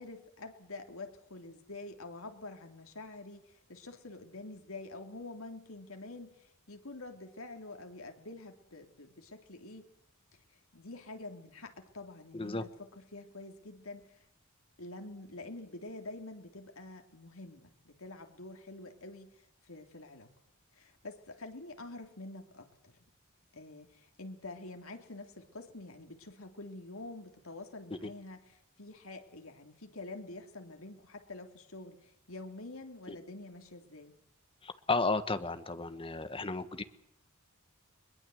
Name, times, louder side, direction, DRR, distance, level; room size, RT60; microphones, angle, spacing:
voice 1, 0.0-9.9 10.7-14.2 14.8-20.3 20.7-23.0 23.5-34.2, left 2 dB, 75° left, 5 dB, 3.3 m, -47 dB
voice 2, 34.6-36.8, left 3 dB, 25° left, 11 dB, 1.4 m, -33 dB
22.0 x 22.0 x 7.9 m, 0.74 s
head